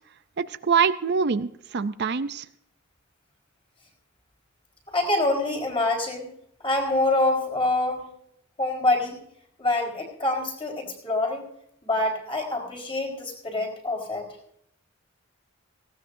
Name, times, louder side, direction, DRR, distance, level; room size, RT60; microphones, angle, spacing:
voice 1, 0.4-2.5, right 6 dB, 50° right, 12 dB, 0.5 m, -24 dB
voice 2, 4.9-6.3 6.6-8.1 8.6-9.2 9.6-11.4 11.8-14.2, left 2 dB, 25° left, 1 dB, 4.5 m, -25 dB
18.5 x 17.0 x 2.6 m, 0.70 s
head